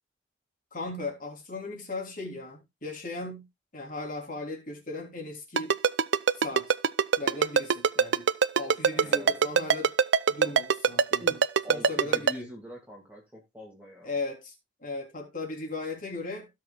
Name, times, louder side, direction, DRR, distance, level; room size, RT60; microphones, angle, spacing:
voice 1, 0.7-3.5 3.7-5.8 6.4-6.7 7.2-8.3 8.5-9.9 10.3-11.4 11.7-12.5 14.0-14.5 14.8-16.5, left 2 dB, 40° left, 3.5 m, -37 dB
Ringtone, 5.6-12.3, right 6 dB, 60° right, 0.5 m, -21 dB
voice 2, 8.9-9.5 11.2-14.2, equal, 5° right, 2.3 m, -44 dB
17.0 x 6.5 x 2.4 m
head